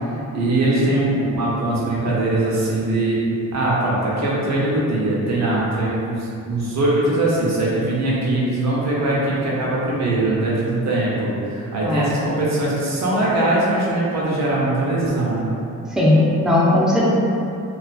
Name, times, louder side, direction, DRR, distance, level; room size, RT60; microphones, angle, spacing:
voice 1, 0.3-3.2 3.5-15.5, right 2 dB, 50° right, -6 dB, 0.7 m, -21 dB
voice 2, 11.8-12.1 15.9-17.0, left 1 dB, ahead, -7 dB, 0.4 m, -17 dB
2.4 x 2.2 x 2.3 m, 2.7 s
cardioid pair, 115°, 34 cm